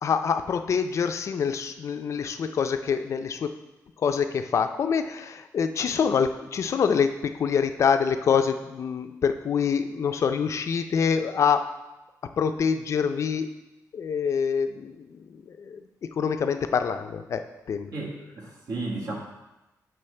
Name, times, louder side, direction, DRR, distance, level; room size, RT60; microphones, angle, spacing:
voice 1, 0.0-3.5 4.0-11.7 12.4-13.5 13.9-17.9, left 6 dB, 50° left, 8 dB, 0.4 m, -26 dB
voice 2, 17.9-19.1, right 2 dB, 70° right, -2 dB, 1.4 m, -33 dB
6.9 x 5.5 x 3.3 m, 1.0 s
wide cardioid pair, 160°, 6 cm